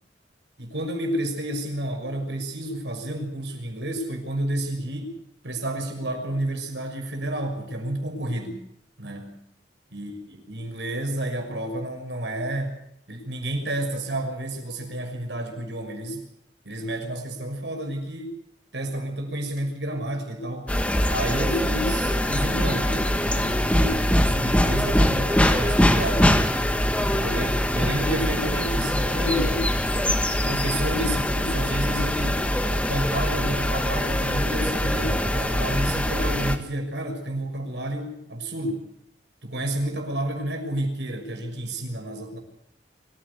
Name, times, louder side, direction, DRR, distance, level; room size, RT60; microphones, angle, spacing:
voice 1, 0.6-5.1 5.4-8.6 9.0-9.4 9.9-12.8 13.1-16.2 16.6-18.3 18.7-20.7 21.1-26.4 27.1-29.7 30.3-32.4 32.9-38.9 39.4-42.4, right 1 dB, 80° right, 3 dB, 6.4 m, -30 dB
sound 1, 20.7-36.6, left 1 dB, 5° left, 1.8 m, -23 dB
25.0 x 16.0 x 8.4 m, 0.76 s
head